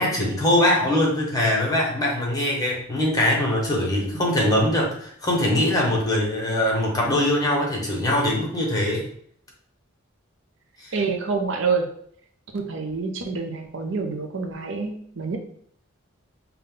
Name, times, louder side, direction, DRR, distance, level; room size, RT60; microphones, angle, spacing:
voice 1, 0.0-9.0 10.8-10.9, left 1 dB, 20° left, -2 dB, 1.1 m, -22 dB
voice 2, 10.9-11.9 12.5-15.4, right 4 dB, 60° right, 4 dB, 0.5 m, -27 dB
5.2 x 2.3 x 3.7 m, 0.64 s
head